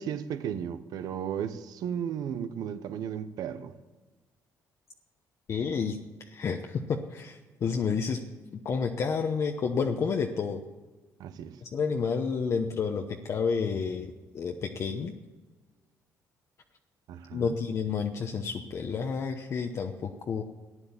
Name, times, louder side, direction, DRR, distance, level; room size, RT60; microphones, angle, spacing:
voice 1, 0.0-3.7 11.2-11.6 17.1-17.5, right 8 dB, 75° right, 11 dB, 1.0 m, -35 dB
voice 2, 5.5-6.0 6.3-8.2 8.6-10.6 11.6-14.1 14.3-15.1 17.3-20.4, left 5 dB, 45° left, 3 dB, 1.0 m, -30 dB
14.5 x 10.0 x 7.2 m, 1.3 s
cardioid pair, 120°, 7 cm